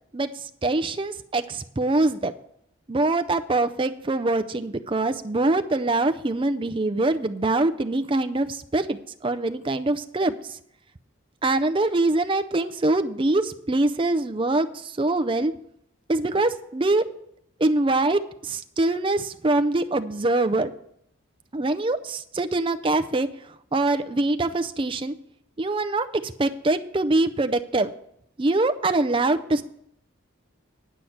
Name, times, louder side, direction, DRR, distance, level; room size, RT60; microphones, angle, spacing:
voice 1, 0.1-2.3 2.9-10.6 11.4-15.5 16.1-17.1 17.6-20.7 21.5-23.3 23.7-25.1 25.6-27.9 28.4-29.6, right 2 dB, 25° right, 8 dB, 0.5 m, -24 dB
10.0 x 5.8 x 7.8 m, 0.73 s
head